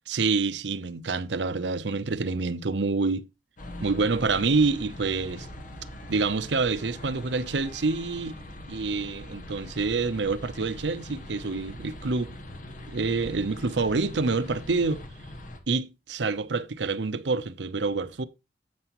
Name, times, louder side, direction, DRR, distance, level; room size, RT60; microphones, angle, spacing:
voice 1, 0.1-3.3 3.8-5.5 6.1-8.4 8.7-12.3 12.9-15.0 15.7-18.2, right 4 dB, 85° right, 0.7 m, -27 dB
sound 1, 3.6-15.6, left 1 dB, 45° left, 1.4 m, -42 dB
9.4 x 8.1 x 3.0 m
head